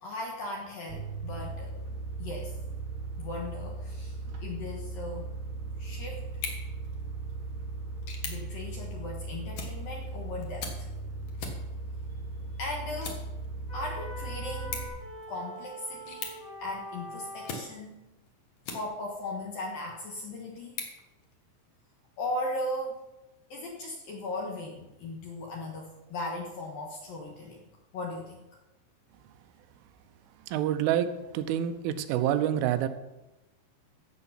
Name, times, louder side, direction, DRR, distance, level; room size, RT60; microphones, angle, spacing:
voice 1, 0.0-1.8 2.2-2.6 3.2-5.3 5.8-6.2 8.3-10.9 12.6-13.2 13.7-14.9 15.3-16.3 16.6-18.0 18.7-20.8 22.2-23.0 23.5-27.7 27.9-28.4, left 1 dB, 70° left, -1 dB, 2.2 m, -37 dB
sound 1, 0.9-14.9, right 3 dB, 60° right, 3.7 m, -38 dB
sound 2, 6.3-19.3 19.8-21.8, left 5 dB, 90° left, 1.5 m, -45 dB
sound 3, 13.7-17.7, left 1 dB, 20° left, 3.0 m, -43 dB
voice 2, 30.5-32.9, right 11 dB, 80° right, 9 dB, 3.1 m, -27 dB
15.5 x 6.9 x 5.7 m, 0.99 s
omnidirectional pair, 5.9 m